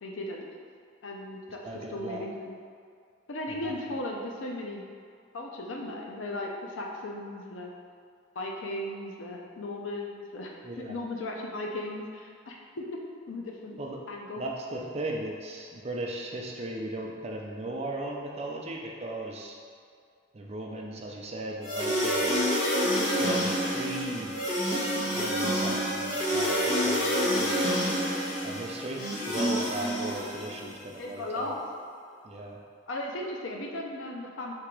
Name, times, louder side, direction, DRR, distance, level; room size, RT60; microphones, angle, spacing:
voice 1, 0.0-0.5 1.0-1.6 1.9-2.5 3.3-4.8 5.3-7.7 8.4-13.0 13.3-13.8 14.1-14.4 31.0-31.6 32.9-34.5, left 1 dB, 85° left, 0 dB, 0.6 m, -36 dB
voice 2, 1.6-2.2 3.5-4.0 10.6-11.0 13.8-14.0 14.4-19.6 20.3-22.6 23.1-24.4 25.1-27.6 28.4-31.5 32.2-32.6, right 1 dB, 35° right, -1 dB, 0.5 m, -37 dB
sound 1, 21.6-30.8, equal, 35° left, 1.3 m, -28 dB
3.7 x 2.9 x 4.6 m, 2.3 s
head